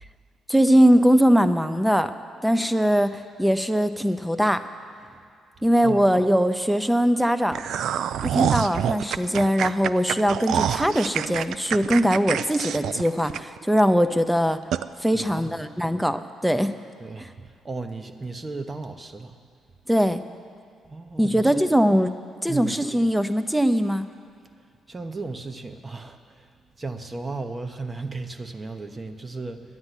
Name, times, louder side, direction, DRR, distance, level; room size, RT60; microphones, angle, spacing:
voice 1, 0.5-2.1 2.4-4.6 5.6-7.6 8.2-14.6 15.0-16.7 19.9-20.2 21.2-22.1 22.4-24.1, equal, 5° right, 11 dB, 0.7 m, -21 dB
voice 2, 5.6-6.1 15.1-15.6 17.0-19.4 20.8-21.7 22.5-22.8 24.9-26.5 26.8-29.6, right 3 dB, 25° right, 7 dB, 1.0 m, -35 dB
sound 1, 7.5-13.8 14.2-14.3 14.7-14.9, right 9 dB, 75° right, 0.3 m, -26 dB
10.5 x 9.5 x 9.9 m, 2.4 s
cardioid pair, 90°, 0 cm